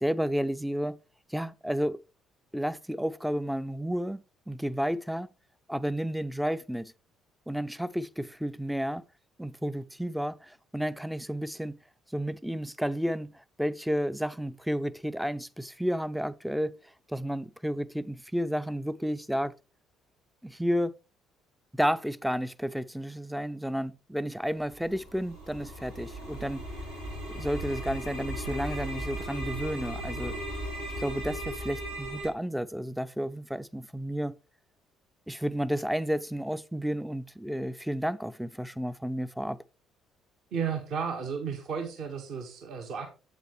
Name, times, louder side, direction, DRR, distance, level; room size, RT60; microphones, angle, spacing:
voice 1, 0.0-1.0 1.3-2.0 2.5-5.3 5.7-6.9 7.5-9.0 9.4-11.8 12.1-16.7 17.1-19.5 20.4-20.9 21.7-26.6 27.3-30.4 31.0-34.4 35.3-39.6, equal, ahead, 0.5 m, -31 dB
sound 1, 24.5-32.3, right 1 dB, 85° right, 3.3 m, -37 dB
voice 2, 40.5-43.1, right 6 dB, 55° right, 1.3 m, -33 dB
8.1 x 8.1 x 3.1 m
figure-of-eight pair, 50°, 0 cm